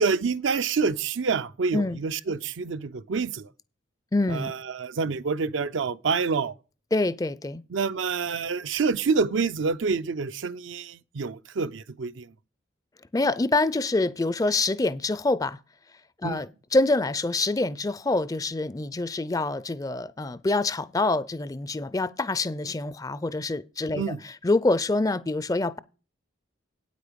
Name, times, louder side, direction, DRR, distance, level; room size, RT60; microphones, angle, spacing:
voice 1, 0.0-3.5 4.3-6.6 7.7-12.3 16.2-16.4 23.9-24.2, right 5 dB, 70° right, 0.5 m, -27 dB
voice 2, 4.1-4.5 6.9-7.6 13.1-15.6 16.2-25.8, left 2 dB, 20° left, 0.4 m, -26 dB
9.1 x 8.3 x 5.1 m
head